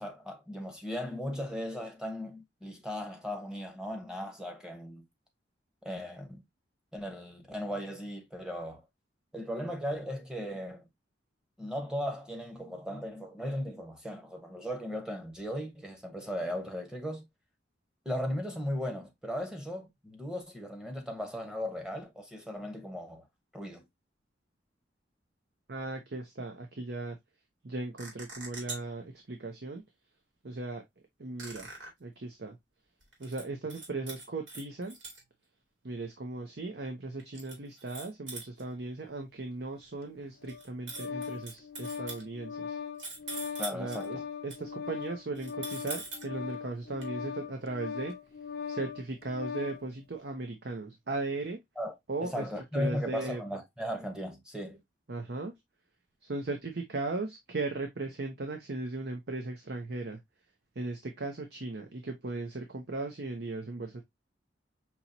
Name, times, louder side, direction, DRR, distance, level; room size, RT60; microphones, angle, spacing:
voice 1, 0.0-5.0 5.8-6.4 6.9-8.8 9.3-10.8 11.6-17.2 18.0-23.3 23.5-23.8 43.6-44.2 51.8-51.9 52.2-54.8, equal, 5° right, 1.0 m, -37 dB
voice 2, 25.7-27.2 27.6-29.8 30.4-30.8 31.2-31.7 32.0-32.6 33.2-35.0 35.8-42.8 43.7-48.1 48.7-51.6 52.1-52.5 52.7-53.4 55.1-55.5 56.2-60.2 60.8-64.0, right 2 dB, 60° right, 0.8 m, -37 dB
sound 1, 28.0-29.0 31.4-31.9 33.0-33.4 33.7-35.2 37.2-38.6 40.5-42.2 43.0-44.1 44.5-44.6 45.3-46.3 47.0-47.1, right 3 dB, 85° right, 2.5 m, -42 dB
Organ, 40.4-49.8, left 6 dB, 55° left, 0.6 m, -40 dB
5.6 x 3.0 x 2.7 m
head